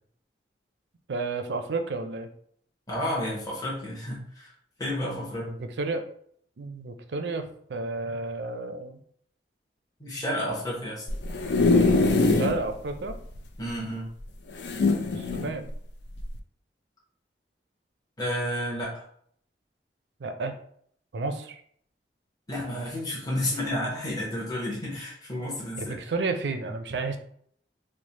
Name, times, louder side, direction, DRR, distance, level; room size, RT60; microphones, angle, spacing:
voice 1, 1.1-2.3 5.4-6.0 6.6-9.0 12.4-13.2 15.1-15.7 20.2-20.6 21.1-21.6 25.8-27.2, right 3 dB, 70° right, 8 dB, 0.4 m, -31 dB
voice 2, 2.9-4.5 4.8-5.5 10.0-11.1 13.6-14.1 18.2-19.0 22.5-25.9, left 1 dB, 20° left, -6 dB, 0.9 m, -31 dB
sound 1, 11.1-12.6 13.1-13.2 13.4-13.5 14.6-15.5 16.2-16.4, left 3 dB, 75° left, 0.4 m, -22 dB
3.2 x 2.1 x 4.1 m, 0.64 s
head